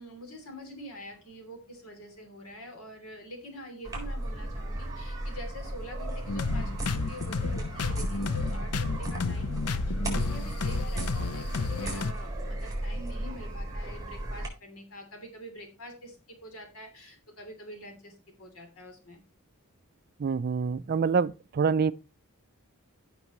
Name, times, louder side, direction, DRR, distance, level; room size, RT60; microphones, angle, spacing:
voice 1, 0.0-19.2, left 1 dB, 70° left, 3.1 m, -45 dB
sound 1, 3.8-14.5, right 1 dB, 15° right, 4.0 m, -35 dB
sound 2, 6.3-12.1, left 4 dB, 90° left, 0.7 m, -32 dB
voice 2, 20.2-21.9, right 5 dB, 45° right, 0.4 m, -26 dB
15.5 x 6.0 x 3.1 m
head